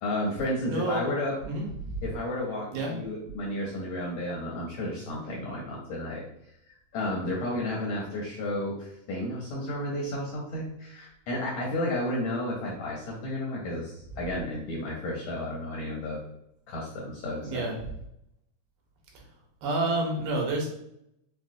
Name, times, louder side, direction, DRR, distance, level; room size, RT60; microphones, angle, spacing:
voice 1, 0.0-1.4 2.0-6.2 6.9-16.2 16.7-17.7, left 1 dB, 75° left, -3 dB, 1.7 m, -32 dB
voice 2, 0.7-1.0 1.4-2.0 2.7-3.0 17.4-17.7 19.6-20.7, right 2 dB, 85° right, 1 dB, 2.6 m, -29 dB
5.7 x 2.1 x 2.6 m, 0.78 s
omnidirectional pair, 3.9 m